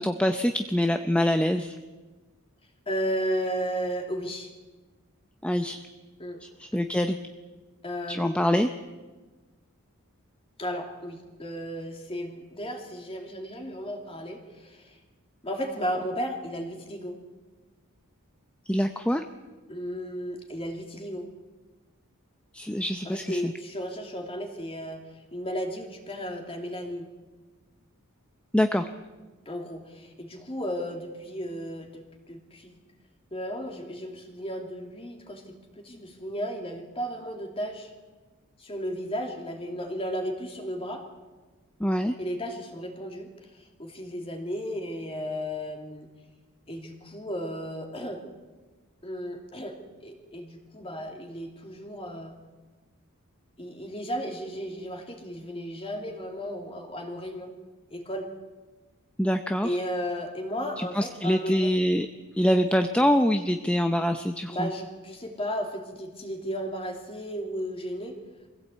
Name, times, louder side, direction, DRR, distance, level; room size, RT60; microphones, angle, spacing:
voice 1, 0.0-1.8 5.4-5.8 6.4-7.2 8.1-8.7 18.7-19.2 22.5-23.5 28.5-28.9 41.8-42.1 59.2-59.8 60.8-62.1 62.4-64.7, equal, 5° left, 7 dB, 0.6 m, -25 dB
voice 2, 2.9-4.5 6.2-6.4 7.8-8.5 10.6-15.0 15.4-17.2 19.7-21.3 23.0-27.1 29.5-32.7 33.3-37.9 38.6-41.1 42.2-46.1 46.7-48.2 49.0-49.8 50.0-52.4 53.6-57.5 57.9-58.3 59.6-61.7 64.5-68.2, equal, 25° left, 3 dB, 2.9 m, -34 dB
23.5 x 16.5 x 8.3 m, 1.3 s
head